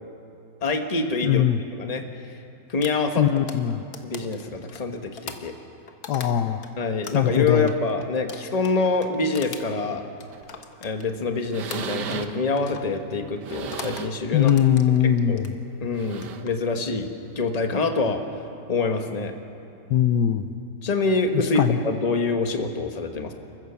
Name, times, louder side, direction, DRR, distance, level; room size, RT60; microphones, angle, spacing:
voice 1, 0.6-1.4 1.8-2.0 2.7-3.3 4.0-5.5 6.8-10.0 10.8-14.5 15.0-15.4 15.8-18.2 18.7-19.3 20.8-23.3, left 3 dB, 25° left, 5 dB, 1.2 m, -26 dB
voice 2, 1.2-1.6 3.2-3.8 6.1-6.6 7.1-7.7 14.3-15.5 19.9-20.5 21.6-21.8, left 10 dB, 75° left, 10 dB, 1.4 m, -21 dB
sound 1, 2.8-6.7 7.0-11.3 11.7-12.3 12.6-12.9 13.5-14.1 14.4-15.5 16.1-16.5, left 5 dB, 60° left, 1.7 m, -41 dB
sound 2, 10.3-10.6 11.1-11.2 11.4-12.5 13.2-14.3 14.8-14.9 15.8-16.6 17.6-17.7, right 8 dB, 75° right, 1.6 m, -36 dB
29.5 x 15.0 x 7.0 m, 2.7 s
omnidirectional pair, 1.8 m